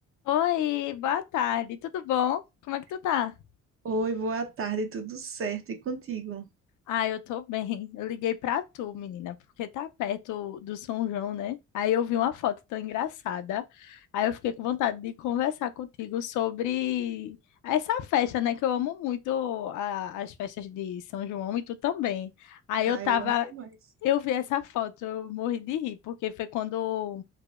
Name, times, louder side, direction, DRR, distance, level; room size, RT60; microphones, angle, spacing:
voice 1, 0.3-2.4 2.7-3.3 6.9-17.4 17.6-23.5 24.0-27.2, left 11 dB, 80° left, 0.5 m, -29 dB
voice 2, 3.8-6.5 22.9-23.7, right 3 dB, 45° right, 0.8 m, -32 dB
4.7 x 2.0 x 2.3 m
cardioid pair, 90°, 30 cm